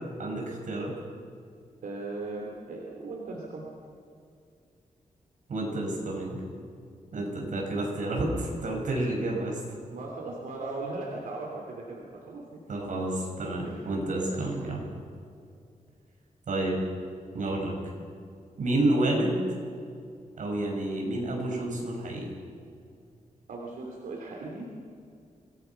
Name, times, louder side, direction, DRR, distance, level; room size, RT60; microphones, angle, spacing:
voice 1, 0.2-0.9 5.5-6.4 7.1-9.6 12.7-14.8 16.5-16.8 17.3-17.7 18.6-19.4 20.3-22.3, right 1 dB, 65° right, -1 dB, 6.1 m, -29 dB
voice 2, 1.8-3.7 7.1-7.2 9.9-12.6 13.6-14.3 23.5-24.7, right 3 dB, 90° right, -2 dB, 3.1 m, -38 dB
25.5 x 18.0 x 5.9 m, 2.4 s
wide cardioid pair, 160°, 14 cm